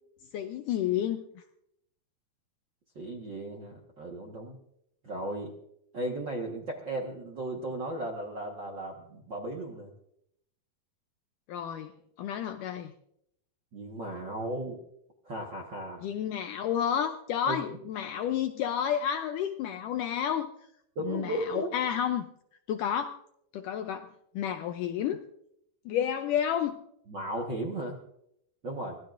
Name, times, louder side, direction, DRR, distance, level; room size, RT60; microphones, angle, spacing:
voice 1, 0.3-1.4 11.5-11.9 12.2-12.9 16.0-20.5 21.0-22.3 22.7-23.2 23.5-24.1 24.4-25.2 25.9-26.8, left 9 dB, 80° left, 7 dB, 1.9 m, -30 dB
voice 2, 2.9-4.6 5.0-5.5 5.9-9.9 13.7-14.8 15.2-16.0 17.5-17.7 20.9-21.7 27.1-28.0 28.6-29.0, right 1 dB, 55° right, 0 dB, 1.3 m, -35 dB
24.5 x 17.5 x 2.6 m, 0.75 s
omnidirectional pair, 4.4 m